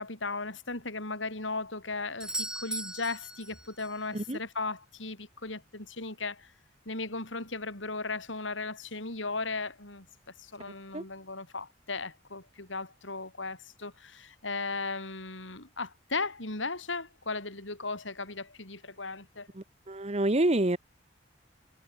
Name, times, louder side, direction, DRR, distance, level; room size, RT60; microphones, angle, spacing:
voice 1, 0.0-6.5 6.9-10.1 10.4-19.5, left 3 dB, 80° left, 6.0 m, -36 dB
Doorbell, 2.2-4.0 8.1-8.2, right 1 dB, 5° right, 1.9 m, -38 dB
voice 2, 19.5-20.8, right 1 dB, 35° right, 1.1 m, -27 dB
head